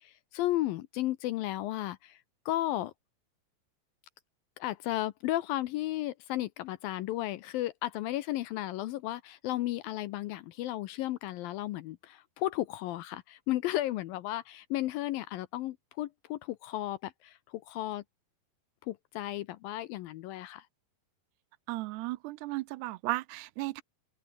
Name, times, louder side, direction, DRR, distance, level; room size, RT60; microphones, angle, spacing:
voice 1, 0.0-2.9 4.6-18.0 18.8-20.7, left 15 dB, 75° left, 2.2 m, -34 dB
voice 2, 21.7-23.8, right 20 dB, 90° right, 2.8 m, -35 dB
omnidirectional pair, 4.8 m